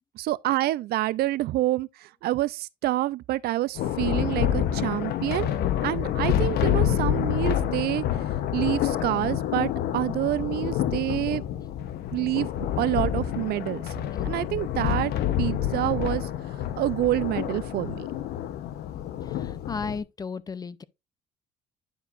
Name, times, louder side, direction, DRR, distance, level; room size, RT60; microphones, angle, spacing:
voice 1, 0.2-5.5 5.8-8.0 8.5-11.4 12.1-13.8 14.2-15.1 15.4-16.3 16.8-18.1, right 16 dB, 70° right, 0.5 m, -27 dB
Thunder, 3.8-20.0, left 11 dB, 75° left, 0.8 m, -28 dB
voice 2, 19.3-20.8, left 5 dB, 20° left, 0.5 m, -34 dB
10.0 x 4.7 x 2.4 m
cardioid pair, 110°, 17 cm